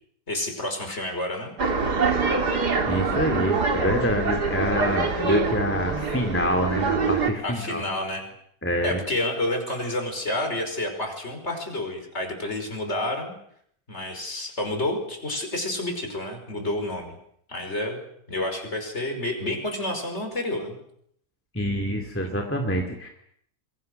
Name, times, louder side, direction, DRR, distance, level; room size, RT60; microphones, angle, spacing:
voice 1, 0.3-1.5 7.4-8.2 8.8-13.3 13.9-17.2 17.5-18.0 18.3-20.8, left 1 dB, 40° left, 4 dB, 5.7 m, -29 dB
sound 1, 1.6-7.3, right 4 dB, 75° right, 3.1 m, -25 dB
voice 2, 2.9-7.8 8.6-9.0 21.5-23.1, equal, 5° left, 3 dB, 2.7 m, -26 dB
27.5 x 22.5 x 6.7 m, 0.69 s
omnidirectional pair, 1.7 m